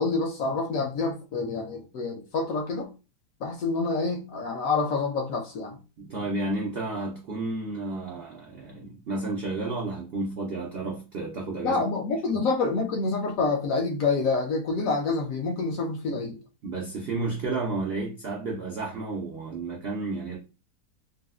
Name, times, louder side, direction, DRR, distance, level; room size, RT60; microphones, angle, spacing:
voice 1, 0.0-2.9 3.4-5.8 11.6-16.4, left 3 dB, 70° left, 0.9 m, -27 dB
voice 2, 6.0-11.8 12.3-12.4 16.6-20.4, right 2 dB, 85° right, 0.5 m, -32 dB
3.8 x 2.0 x 2.3 m
omnidirectional pair, 1.8 m